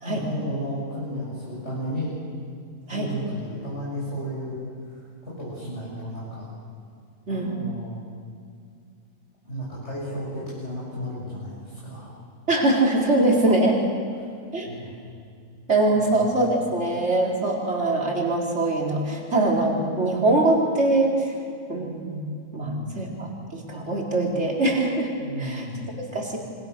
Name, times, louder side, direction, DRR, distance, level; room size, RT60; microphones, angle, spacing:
voice 1, 0.0-2.1 2.9-4.6 4.9-6.5 7.3-8.0 9.4-12.2 14.7-14.9 15.9-16.3 22.6-23.0 25.2-26.0, equal, 55° left, -8 dB, 7.4 m, -33 dB
voice 2, 12.5-13.8 14.5-14.7 15.7-21.3 21.7-22.2 22.5-25.1 25.4-25.7 26.1-26.4, right 2 dB, 50° right, -1 dB, 4.6 m, -23 dB
28.0 x 25.0 x 6.9 m, 2.3 s
omnidirectional pair, 1.4 m